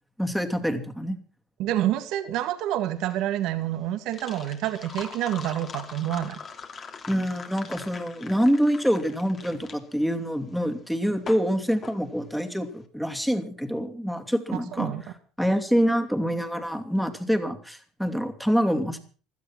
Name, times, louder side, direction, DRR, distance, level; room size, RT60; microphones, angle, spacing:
voice 1, 0.2-1.2 7.1-14.9 15.4-19.0, equal, ahead, 6 dB, 2.7 m, -26 dB
voice 2, 1.6-6.4 14.7-15.0, right 12 dB, 70° right, 9 dB, 2.0 m, -28 dB
sound 1, 2.9-12.7, left 5 dB, 40° left, 3.0 m, -42 dB
17.0 x 12.5 x 6.0 m, 0.40 s
supercardioid pair, 80°, 0 cm